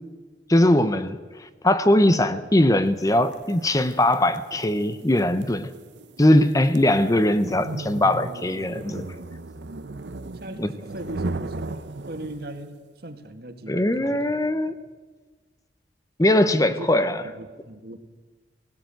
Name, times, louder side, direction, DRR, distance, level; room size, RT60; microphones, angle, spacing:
voice 1, 0.5-5.7 6.2-9.1 10.6-10.7 13.7-14.8 16.2-17.2, left 1 dB, 20° left, 12 dB, 0.7 m, -20 dB
sound 1, 3.3-12.7, right 2 dB, 85° right, 0.9 m, -36 dB
voice 2, 10.3-14.3 16.6-16.9 17.3-18.0, right 1 dB, 60° right, 7 dB, 1.9 m, -39 dB
17.5 x 16.5 x 9.2 m, 1.4 s
head